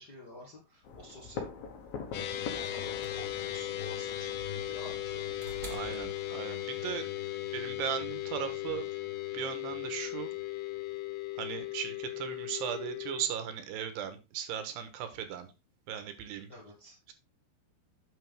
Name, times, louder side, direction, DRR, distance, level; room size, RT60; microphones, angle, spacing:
voice 1, 0.0-1.5 2.5-5.2 16.5-17.0, left 1 dB, 45° left, -3 dB, 1.4 m, -50 dB
sound 1, 0.8-5.8, left 5 dB, 65° left, 2.9 m, -44 dB
sound 2, 2.1-13.2, left 13 dB, 80° left, 1.9 m, -37 dB
sound 3, 2.6-6.9 8.1-8.2, right 4 dB, 50° right, 0.9 m, -49 dB
voice 2, 5.7-7.1 7.5-8.9 9.3-10.3 11.4-15.5 15.9-16.5, right 9 dB, 80° right, 9 dB, 3.2 m, -37 dB
9.5 x 6.5 x 3.5 m, 0.27 s
omnidirectional pair, 4.9 m